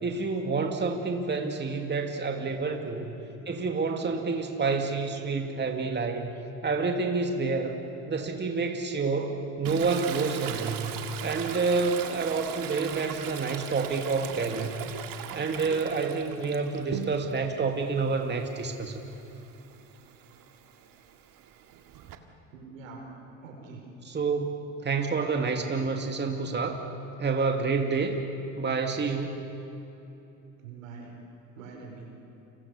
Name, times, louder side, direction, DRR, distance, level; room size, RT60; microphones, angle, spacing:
voice 1, 0.0-3.2 3.5-6.3 6.6-7.8 8.1-14.9 15.3-19.0 24.1-26.8 27.2-28.2 28.6-29.4, right 4 dB, 25° right, 3 dB, 2.5 m, -28 dB
Toilet flush, 9.6-17.5 17.9-22.2, right 9 dB, 60° right, 2.2 m, -40 dB
voice 2, 22.5-23.0 23.4-23.8 30.6-31.1 31.5-32.1, right 4 dB, 90° right, 0 dB, 5.7 m, -44 dB
29.5 x 25.5 x 6.7 m, 2.9 s
hypercardioid pair, 75°, 39 cm